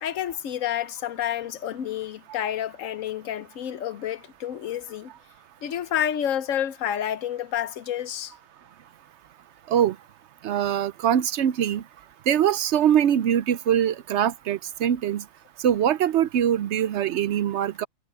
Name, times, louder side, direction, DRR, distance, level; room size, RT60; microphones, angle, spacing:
voice 1, 0.0-5.1 5.6-8.3, left 10 dB, 75° left, 1.1 m, -29 dB
voice 2, 10.4-11.8 12.3-15.2 15.6-17.9, right 10 dB, 65° right, 0.8 m, -23 dB
omnidirectional pair, 1.4 m